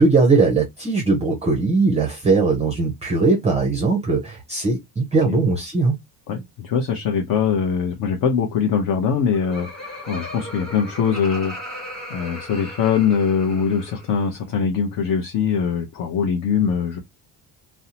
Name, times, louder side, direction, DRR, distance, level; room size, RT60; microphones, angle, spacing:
voice 1, 0.0-6.0, right 3 dB, 15° right, 0.5 m, -19 dB
voice 2, 6.3-17.0, left 6 dB, 50° left, 0.6 m, -22 dB
Laughter, 9.0-14.3, equal, ahead, 1.2 m, -37 dB
2.6 x 2.0 x 2.7 m
cardioid pair, 120°, 44 cm